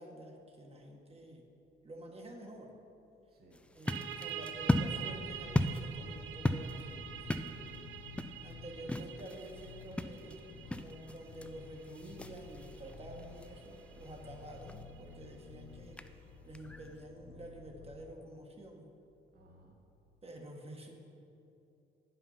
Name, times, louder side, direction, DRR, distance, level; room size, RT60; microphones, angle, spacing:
voice 1, 0.0-1.4 1.8-2.7 3.7-7.3 8.4-16.0 16.4-18.9 20.2-20.9, right 1 dB, 30° right, 1 dB, 1.4 m, -49 dB
voice 2, 3.3-3.6 7.4-8.9 19.3-19.8, right 1 dB, 50° right, 0 dB, 1.5 m, -62 dB
sound 1, 3.5-17.0, left 1 dB, 5° left, 0.3 m, -39 dB
sound 2, 3.9-15.2, right 9 dB, 80° right, 0.6 m, -47 dB
sound 3, 4.4-18.1, left 4 dB, 90° left, 0.7 m, -53 dB
9.0 x 5.7 x 5.6 m, 2.7 s
cardioid pair, 90°, 20 cm